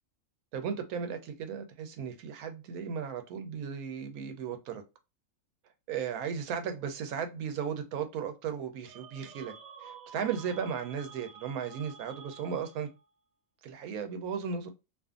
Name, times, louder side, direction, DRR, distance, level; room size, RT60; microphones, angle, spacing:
voice 1, 0.5-4.8 5.9-9.5 9.8-12.9 13.6-14.7, right 7 dB, 90° right, 1.1 m, -35 dB
sound 1, 8.9-13.0, right 6 dB, 60° right, 0.8 m, -50 dB
2.5 x 2.4 x 2.4 m
omnidirectional pair, 1.5 m